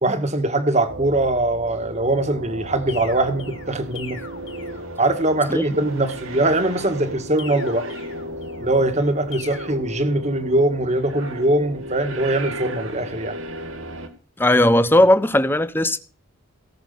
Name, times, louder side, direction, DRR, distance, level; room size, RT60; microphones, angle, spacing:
voice 1, 0.0-4.2 5.0-7.9 8.6-13.4, right 2 dB, 35° right, 1.9 m, -22 dB
sound 1, 0.9-14.1, right 1 dB, 85° right, 2.5 m, -35 dB
sound 2, 2.9-5.3 7.4-8.8 9.3-9.8, left 6 dB, 65° left, 3.4 m, -41 dB
voice 2, 14.4-16.0, left 1 dB, 10° left, 0.8 m, -17 dB
18.0 x 6.9 x 6.8 m
head